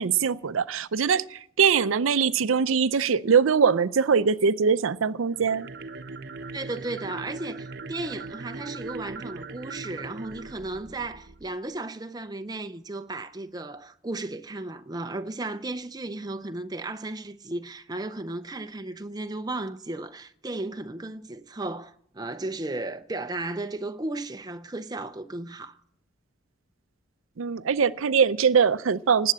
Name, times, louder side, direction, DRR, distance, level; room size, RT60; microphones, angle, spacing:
voice 1, 0.0-5.7 27.4-29.3, right 6 dB, 85° right, 0.5 m, -22 dB
sound 1, 5.3-11.6, right 3 dB, 55° right, 0.9 m, -39 dB
voice 2, 6.5-25.8, right 2 dB, 20° right, 0.6 m, -35 dB
19.0 x 7.8 x 8.4 m
head